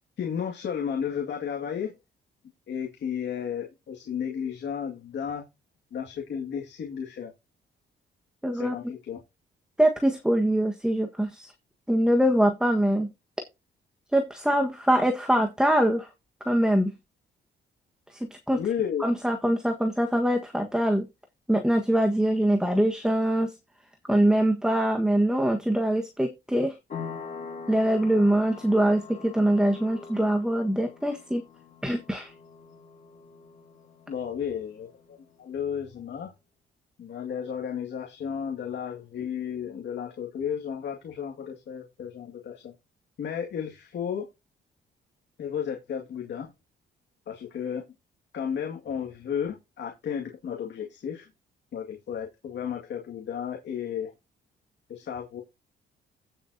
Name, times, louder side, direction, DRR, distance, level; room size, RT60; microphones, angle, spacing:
voice 1, 0.2-1.9 2.7-5.5 5.9-7.3 8.5-9.2 18.5-19.0 34.1-34.9 35.4-36.3 37.0-42.7 43.2-44.3 45.4-46.5 47.3-47.8 48.3-51.3 51.7-54.1 54.9-55.4, left 8 dB, 60° left, 2.2 m, -33 dB
voice 2, 8.4-8.7 9.8-11.5 11.9-13.1 14.1-16.1 16.4-16.9 18.1-18.6 19.0-21.1 21.5-23.5 24.1-26.7 27.7-31.4 31.8-32.3, right 1 dB, 5° right, 1.5 m, -23 dB
sound 1, 26.9-35.2, left 5 dB, 40° left, 5.5 m, -43 dB
15.5 x 7.2 x 2.8 m
cardioid pair, 90°, 20 cm